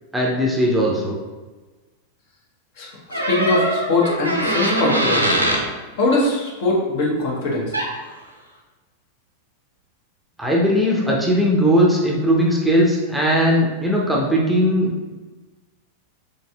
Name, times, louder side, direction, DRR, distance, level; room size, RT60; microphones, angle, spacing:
voice 1, 0.1-1.1 10.4-15.1, equal, 5° right, -3 dB, 0.6 m, -18 dB
voice 2, 2.8-5.4 6.0-7.7, left 2 dB, 50° left, -2 dB, 0.9 m, -21 dB
sound 1, 3.1-5.6 7.7-7.9, right 1 dB, 85° right, 0.5 m, -21 dB
4.0 x 3.2 x 2.3 m, 1.3 s
figure-of-eight pair, 90°, 0 cm